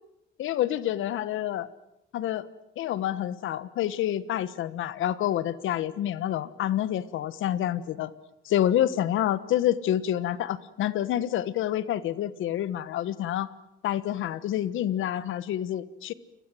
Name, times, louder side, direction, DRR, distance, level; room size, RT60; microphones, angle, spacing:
voice 1, 0.4-1.7 2.1-2.5 2.8-8.1 8.5-13.5 13.8-16.1, left 11 dB, 80° left, 16 dB, 1.3 m, -28 dB
29.5 x 22.0 x 7.8 m, 0.85 s
cardioid pair, 90°, 20 cm